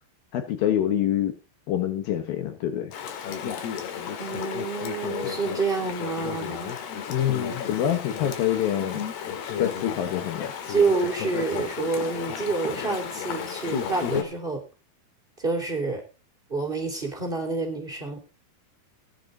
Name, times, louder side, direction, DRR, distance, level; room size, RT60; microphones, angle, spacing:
voice 1, 0.3-1.3 1.7-2.9 7.1-9.0 9.6-10.5, left 10 dB, 70° left, 9 dB, 2.9 m, -26 dB
Chatter / Stream, 2.9-14.2, left 7 dB, 85° left, 3.7 m, -33 dB
voice 2, 4.2-6.8 10.7-14.6 15.4-16.0 16.5-18.2, right 4 dB, 15° right, 1 dB, 2.8 m, -28 dB
15.5 x 10.5 x 3.9 m, 0.32 s
omnidirectional pair, 4.5 m